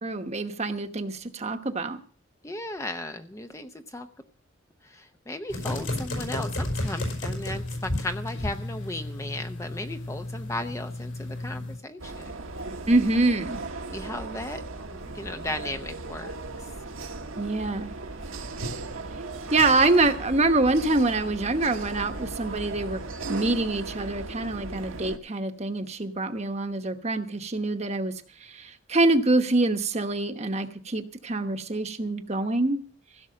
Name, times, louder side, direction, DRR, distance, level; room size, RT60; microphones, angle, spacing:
voice 1, 0.0-2.0 12.9-13.6 17.4-17.9 19.5-23.0 23.3-28.1 28.4-32.8, right 2 dB, 35° right, 7 dB, 1.1 m, -25 dB
voice 2, 2.4-4.1 4.8-12.3 13.9-14.6 15.1-16.4, left 1 dB, 15° left, 7 dB, 0.6 m, -36 dB
sound 1, 5.5-11.8, left 1 dB, 70° left, 5.2 m, -32 dB
sound 2, 12.0-25.2, right 3 dB, 85° right, 1.4 m, -37 dB
16.0 x 6.3 x 7.6 m, 0.41 s
head